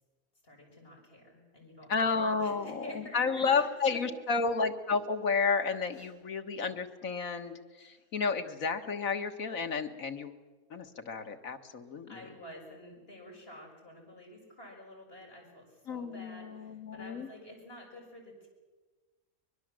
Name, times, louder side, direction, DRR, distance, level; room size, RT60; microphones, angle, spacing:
voice 1, 0.4-4.0 5.9-6.2 7.8-8.1 12.0-18.5, equal, 40° left, 0 dB, 6.5 m, -50 dB
voice 2, 1.9-10.3 10.7-12.2 15.9-17.3, left 4 dB, 75° left, 6 dB, 2.0 m, -31 dB
24.0 x 22.0 x 7.6 m, 1.3 s
omnidirectional pair, 1.5 m